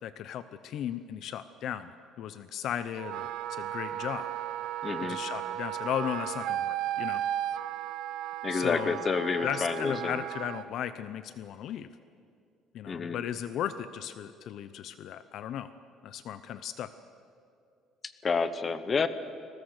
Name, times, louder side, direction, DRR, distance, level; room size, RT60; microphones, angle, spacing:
voice 1, 0.0-1.9 2.2-4.3 5.0-7.2 8.5-9.0 9.4-11.9 12.7-15.7 16.0-16.9, left 10 dB, 50° left, 13 dB, 0.6 m, -36 dB
Wind instrument woodwind instrument, 3.0-10.7, right 12 dB, 60° right, 0.6 m, -35 dB
voice 2, 4.8-5.2 8.4-10.2 12.9-13.2 18.0-19.1, left 5 dB, 25° left, 12 dB, 0.9 m, -29 dB
29.5 x 20.5 x 6.6 m, 2.4 s
cardioid pair, 175°, 0 cm